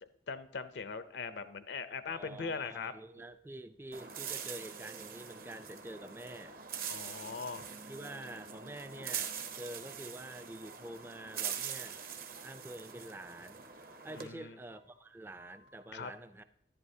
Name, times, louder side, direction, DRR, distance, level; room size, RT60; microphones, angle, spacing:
voice 1, 0.0-2.9 6.9-7.7 14.1-14.6 15.9-16.1, left 5 dB, 70° left, 12 dB, 0.5 m, -41 dB
sound 1, 1.2-5.7 6.2-9.5 9.7-15.8, right 3 dB, 65° right, 1.9 m, -64 dB
voice 2, 2.1-6.5 7.9-12.0 12.4-13.7 14.0-16.4, right 1 dB, 10° right, 11 dB, 0.4 m, -47 dB
sound 2, 3.9-14.3, right 7 dB, 50° right, 0.9 m, -43 dB
11.0 x 10.5 x 2.7 m, 0.77 s
head